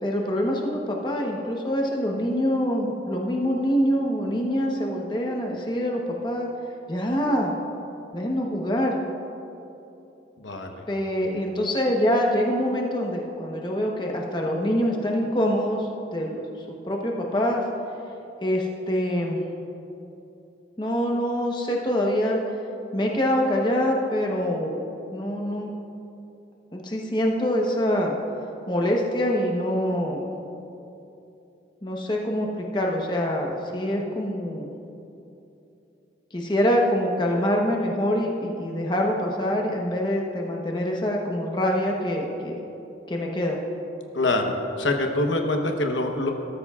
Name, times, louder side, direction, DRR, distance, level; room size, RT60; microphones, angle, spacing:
voice 1, 0.0-6.5 6.9-7.5 8.1-9.0 10.9-16.3 16.8-17.6 18.4-19.4 20.8-22.4 22.9-24.8 25.1-25.7 26.7-28.2 28.7-30.2 31.8-32.5 32.7-34.7 36.3-42.6 43.1-43.6, equal, 25° left, 0 dB, 1.1 m, -25 dB
voice 2, 10.4-10.7 44.1-46.3, left 2 dB, 85° left, 3 dB, 1.1 m, -25 dB
19.0 x 13.0 x 2.5 m, 2.8 s
head